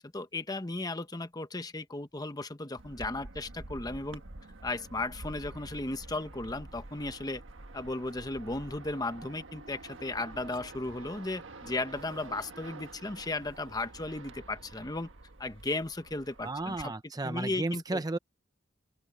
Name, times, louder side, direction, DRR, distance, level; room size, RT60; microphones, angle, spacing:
voice 1, 0.1-4.2 4.6-7.4 7.7-15.1 15.4-16.9 17.2-18.0, left 2 dB, 20° left, 1.0 m, -35 dB
sound 1, 2.8-16.9, right 2 dB, 75° right, 1.5 m, -48 dB
voice 2, 16.4-18.2, right 2 dB, 20° right, 0.5 m, -33 dB
open air
head